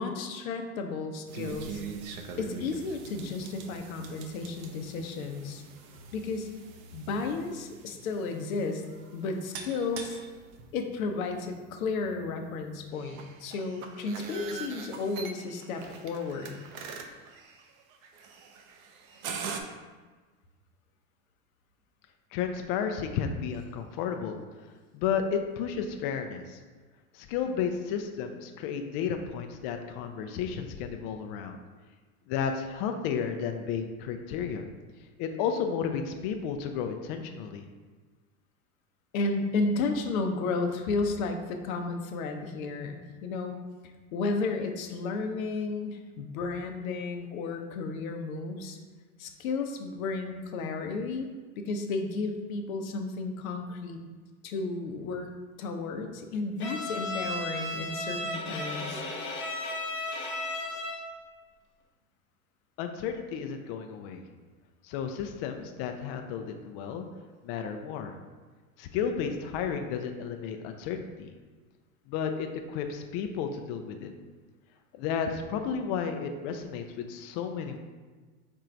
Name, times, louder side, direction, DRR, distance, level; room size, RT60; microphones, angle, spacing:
voice 1, 0.0-1.8 2.4-5.6 6.1-6.5 6.9-8.8 9.1-10.2 10.7-16.6 39.1-43.6 44.1-48.8 49.2-51.3 51.6-54.0 54.4-55.3 55.6-59.0, left 3 dB, 75° left, 5 dB, 0.8 m, -33 dB
sound 1, 1.3-19.6, right 5 dB, 70° right, 0.7 m, -44 dB
voice 2, 22.3-24.4 24.9-26.6 27.1-31.6 32.3-34.7 35.2-37.6 62.8-64.2 64.8-67.1 67.4-68.1 68.8-71.3 72.1-74.1 74.9-77.8, left 7 dB, 50° left, 5 dB, 0.5 m, -32 dB
Bowed string instrument, 56.6-61.2, left 1 dB, 25° left, 0.9 m, -34 dB
4.5 x 2.5 x 4.4 m, 1.4 s
hypercardioid pair, 105°, 42 cm